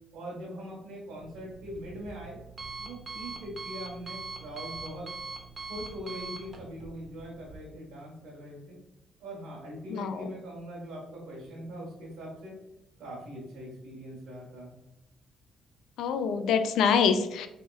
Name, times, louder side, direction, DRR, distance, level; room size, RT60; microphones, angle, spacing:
voice 1, 0.1-2.4 2.8-5.1 5.6-8.8 9.2-12.5 13.0-14.7, equal, 80° right, -5 dB, 1.1 m, -42 dB
Alarm, 1.2-7.6, right 3 dB, 30° right, 0.8 m, -42 dB
voice 2, 9.9-10.2 16.0-17.5, left 6 dB, 85° left, 9 dB, 0.3 m, -25 dB
4.1 x 2.8 x 2.3 m, 0.88 s
cardioid pair, 90°, 0 cm